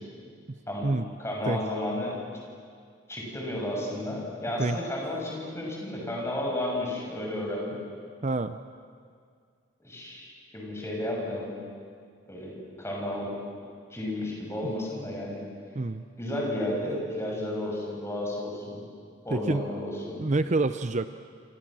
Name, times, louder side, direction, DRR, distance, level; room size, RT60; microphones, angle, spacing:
voice 1, 1.2-2.1 3.1-7.8 9.8-11.5 12.3-13.3 13.9-15.4 16.2-18.8 19.2-20.2, left 1 dB, 15° left, -2 dB, 7.1 m, -32 dB
voice 2, 8.2-8.6 14.6-14.7 15.7-16.0 19.3-19.6 20.2-21.1, right 2 dB, 40° right, 11 dB, 0.6 m, -27 dB
28.0 x 27.5 x 7.7 m, 2.1 s
head